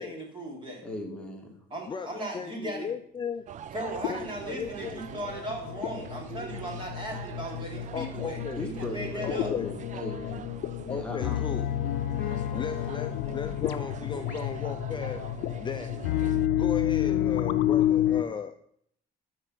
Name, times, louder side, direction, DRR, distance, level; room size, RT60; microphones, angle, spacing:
voice 1, 0.0-0.8 1.7-2.9 3.7-9.5, right 1 dB, 30° right, -1 dB, 3.5 m, -37 dB
voice 2, 0.8-1.5 8.6-10.5 10.9-11.4 12.2-12.3, left 1 dB, 5° left, 0 dB, 1.9 m, -38 dB
sound 1, 1.1-1.4 4.0-18.2, left 12 dB, 80° left, 0.6 m, -30 dB
voice 3, 1.9-3.5 4.1-5.0 7.9-8.6 9.2-9.8 10.9-11.7 12.5-15.3 15.6-16.0 16.6-18.7, left 6 dB, 30° left, 8 dB, 0.5 m, -36 dB
sound 2, 3.5-16.5, right 9 dB, 45° right, 0.5 m, -44 dB
13.0 x 4.6 x 5.5 m, 0.66 s
cardioid pair, 110°, 17 cm